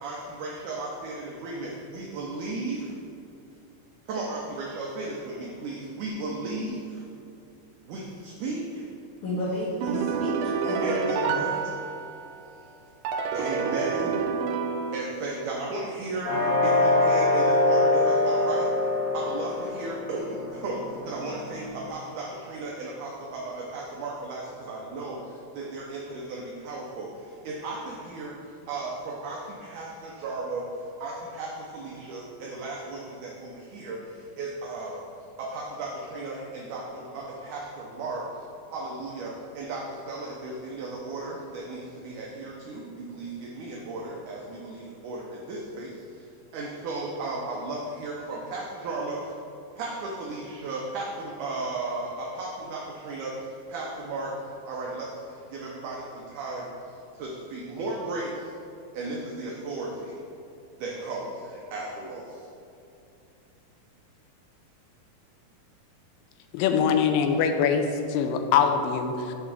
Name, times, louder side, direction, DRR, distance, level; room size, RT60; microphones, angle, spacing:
voice 1, 0.0-2.9 4.1-6.8 7.9-8.8 10.8-11.6 13.3-14.1 14.9-16.3 16.6-18.7 19.1-25.2 25.6-27.1 27.5-28.3 28.7-30.6 31.0-34.0 34.4-35.0 35.4-38.2 38.7-45.9 46.5-49.2 49.8-53.3 53.7-54.3 54.7-55.1 55.5-56.7 57.2-58.3 58.9-60.1 60.8-62.2, right 2 dB, 75° right, -3 dB, 2.0 m, -35 dB
voice 2, 9.2-11.3, left 1 dB, 60° left, -9 dB, 2.6 m, -31 dB
sound 1, 9.8-12.4 13.0-15.5, right 5 dB, 90° right, 2.4 m, -29 dB
sound 2, 16.2-21.9, left 2 dB, 40° left, 2.3 m, -24 dB
voice 3, 66.5-69.3, left 6 dB, 80° left, 6 dB, 2.2 m, -23 dB
9.0 x 3.7 x 5.9 m, 2.7 s
omnidirectional pair, 4.2 m